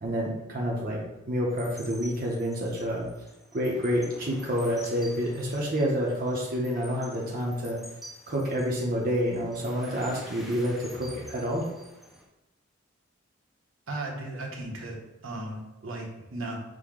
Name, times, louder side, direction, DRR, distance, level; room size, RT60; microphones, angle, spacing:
voice 1, 0.0-1.0 1.3-3.1 3.5-7.8 8.3-11.6, equal, 40° right, -3 dB, 0.6 m, -28 dB
sound 1, 1.5-12.3, equal, ahead, 0.4 m, -49 dB
voice 2, 13.9-15.0 15.2-16.6, right 2 dB, 70° right, -1 dB, 0.9 m, -36 dB
6.1 x 2.1 x 3.6 m, 0.95 s
head